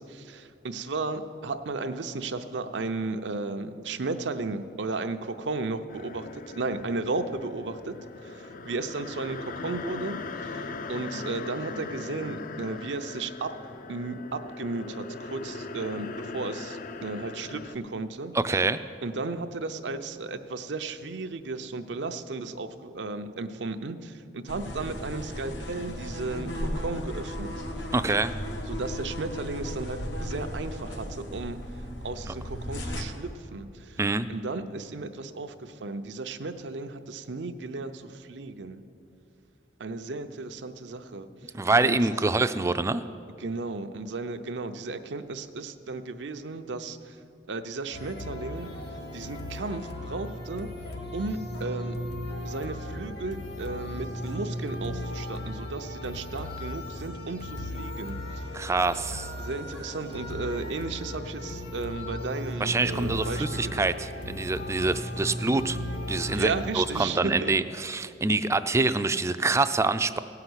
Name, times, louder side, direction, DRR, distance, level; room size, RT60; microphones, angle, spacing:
voice 1, 0.0-7.9 8.6-13.5 13.9-18.3 19.0-27.5 28.7-31.6 32.0-34.0 34.3-38.8 39.8-41.3 41.8-42.0 43.4-47.0 47.5-48.7 49.1-50.7 51.1-51.9 52.4-58.2 59.4-63.9 66.4-67.5, right 3 dB, 85° right, 8 dB, 0.7 m, -34 dB
sound 1, 5.9-17.8, left 3 dB, 50° left, 0.5 m, -39 dB
voice 2, 18.3-18.8 27.9-28.4 32.3-32.4 34.0-34.3 41.5-43.0 58.5-59.3 62.6-65.8 66.1-70.2, right 3 dB, 15° right, 12 dB, 0.4 m, -26 dB
sound 2, 24.5-33.0, equal, 80° left, 1.3 m, -35 dB
sound 3, 47.9-67.0, left 1 dB, 65° left, 1.7 m, -36 dB
16.5 x 5.8 x 8.0 m, 2.8 s
head